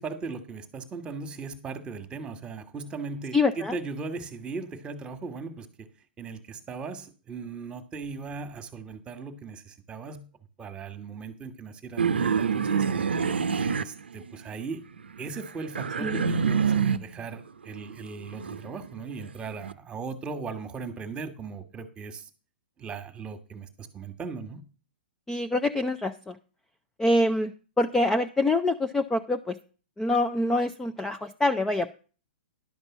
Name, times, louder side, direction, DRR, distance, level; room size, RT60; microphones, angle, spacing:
voice 1, 0.0-5.9 6.2-10.2 10.6-12.8 13.5-14.8 15.2-22.3 22.8-24.6, right 4 dB, 15° right, 11 dB, 1.4 m, -38 dB
voice 2, 3.3-3.8 16.0-16.2 25.3-26.4 27.0-27.5 27.8-29.6 30.0-31.9, left 2 dB, 5° left, 7 dB, 0.5 m, -25 dB
sound 1, 12.0-14.6 15.0-17.2 17.7-19.7, right 6 dB, 90° right, 0.6 m, -27 dB
11.0 x 5.3 x 7.2 m, 0.37 s
hypercardioid pair, 130°, 6 cm